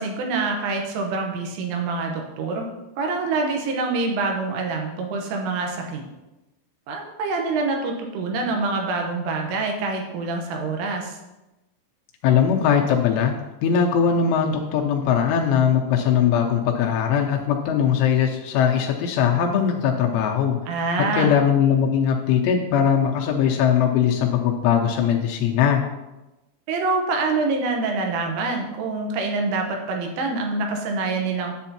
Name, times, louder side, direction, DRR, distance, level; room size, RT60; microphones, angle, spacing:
voice 1, 0.0-2.7 3.0-6.0 6.9-11.2 20.7-21.3 26.7-31.6, right 3 dB, 80° right, 2 dB, 3.5 m, -26 dB
voice 2, 12.2-13.3 13.6-20.6 21.2-25.8, left 8 dB, 85° left, 1 dB, 2.9 m, -20 dB
10.5 x 8.1 x 2.9 m, 1.0 s
omnidirectional pair, 5.9 m